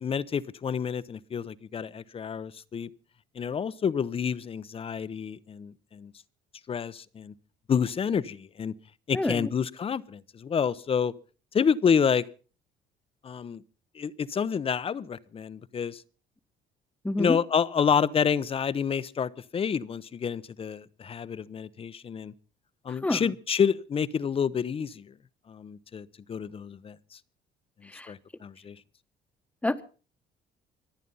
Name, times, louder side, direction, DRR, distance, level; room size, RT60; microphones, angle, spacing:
voice 1, 0.0-2.9 3.4-6.1 6.7-7.3 7.7-8.7 9.1-11.1 11.5-12.2 13.2-13.6 14.0-16.0 17.2-22.3 22.8-25.0 25.5-27.0 28.1-28.8, left 7 dB, 35° left, 0.8 m, -28 dB
voice 2, 9.1-9.5 17.0-17.4 22.9-23.3 27.9-28.1 29.6-29.8, left 2 dB, 10° left, 1.2 m, -28 dB
25.0 x 9.2 x 5.5 m
cardioid pair, 110°, 17 cm